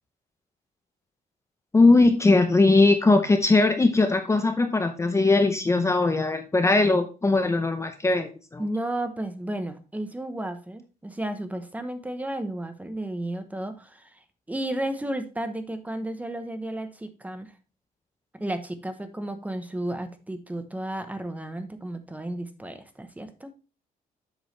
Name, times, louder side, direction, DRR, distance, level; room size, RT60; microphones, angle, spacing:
voice 1, 1.7-8.6, left 3 dB, 20° left, 7 dB, 0.7 m, -20 dB
voice 2, 8.6-14.2 14.5-17.5 18.4-23.5, right 1 dB, 10° right, 8 dB, 0.9 m, -33 dB
8.0 x 6.2 x 3.2 m, 0.33 s
cardioid pair, 115°, 15 cm